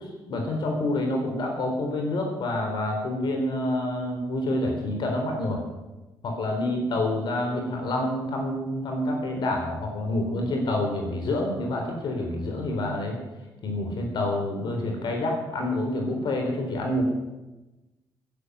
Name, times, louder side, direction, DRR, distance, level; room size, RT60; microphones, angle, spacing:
voice 1, 0.3-5.6 6.2-13.2 13.6-17.0, left 1 dB, 60° left, 2 dB, 3.9 m, -27 dB
15.0 x 10.5 x 8.1 m, 1.1 s
cardioid pair, 110°, 8 cm